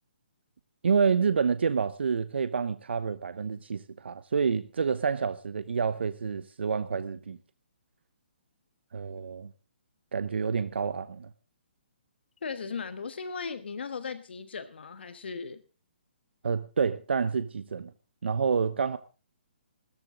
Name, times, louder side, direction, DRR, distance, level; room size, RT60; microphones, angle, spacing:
voice 1, 0.8-7.4 8.9-9.5 10.1-11.3 16.4-17.9 18.2-19.0, right 6 dB, 75° right, 0.8 m, -28 dB
voice 2, 12.4-15.6, left 5 dB, 70° left, 1.3 m, -37 dB
17.0 x 13.5 x 3.8 m
hypercardioid pair, 145°, 6 cm